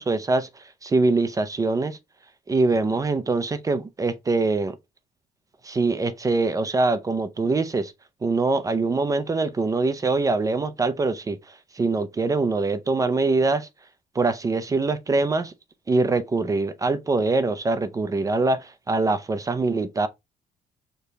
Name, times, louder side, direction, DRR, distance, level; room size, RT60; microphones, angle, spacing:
voice 1, 0.0-2.0 2.5-4.8 5.6-7.9 8.2-13.7 14.2-15.5 15.9-20.1, right 3 dB, 20° right, 0.4 m, -23 dB
4.9 x 2.2 x 2.7 m
cardioid pair, 110°, 17 cm